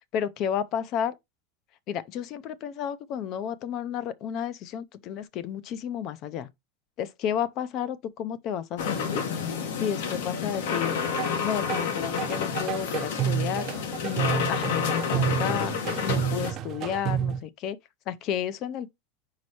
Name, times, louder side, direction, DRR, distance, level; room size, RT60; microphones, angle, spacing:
voice 1, 0.1-1.1 1.9-6.5 7.0-9.2 9.8-11.0 11.4-13.7 14.0-15.7 16.0-17.8 18.1-18.9, left 9 dB, 30° left, 0.5 m, -32 dB
sound 1, 8.8-16.5, left 6 dB, 70° left, 1.7 m, -29 dB
sound 2, 11.2-11.3 11.7-17.4, right 9 dB, 25° right, 0.5 m, -30 dB
5.4 x 4.7 x 4.2 m
supercardioid pair, 175°, 0 cm